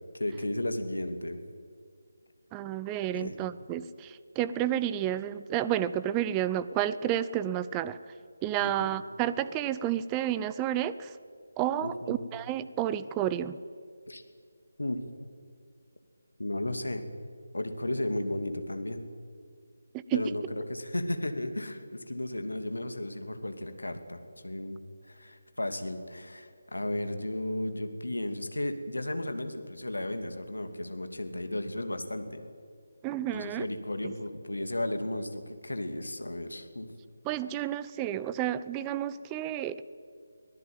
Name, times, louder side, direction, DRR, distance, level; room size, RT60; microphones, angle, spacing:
voice 1, 0.1-1.4 3.1-3.4 8.6-8.9 11.8-12.2 14.1-14.2 14.8-15.0 16.4-17.1 17.5-19.1 20.1-32.4 33.3-36.9, left 1 dB, 70° left, 8 dB, 2.7 m, -34 dB
voice 2, 2.5-8.0 8.4-11.2 11.6-13.6 19.9-20.3 33.0-33.7 34.0-34.1 37.2-39.8, right 11 dB, 15° right, 15 dB, 0.6 m, -31 dB
23.5 x 17.5 x 9.1 m, 2.1 s
figure-of-eight pair, 155°, 0 cm